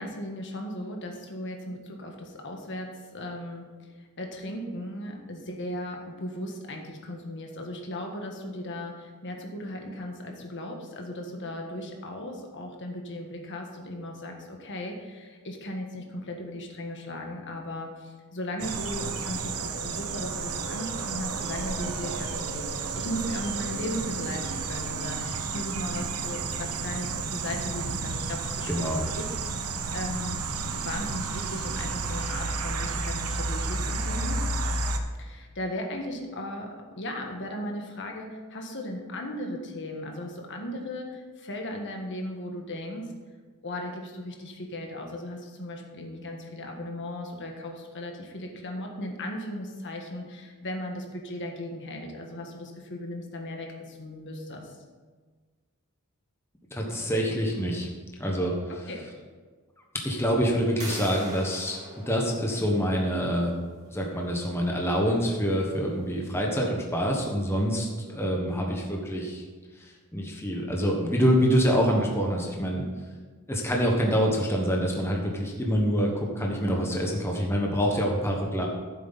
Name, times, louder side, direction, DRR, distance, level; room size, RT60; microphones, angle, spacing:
voice 1, 0.0-28.9 29.9-30.4 30.7-34.4 35.2-43.1 43.6-54.8 58.9-59.1, left 1 dB, 55° left, 2 dB, 1.5 m, -37 dB
sound 1, 18.6-35.0, right 4 dB, 75° right, 1.0 m, -32 dB
voice 2, 28.7-29.0 56.7-57.9 58.2-58.5 60.0-61.8 62.1-63.5 63.9-69.4 70.1-72.9 73.5-78.7, equal, 10° left, -1 dB, 1.3 m, -26 dB
sound 2, 60.8-66.4, right 1 dB, 35° right, 3.0 m, -45 dB
14.0 x 7.8 x 4.1 m, 1.4 s
head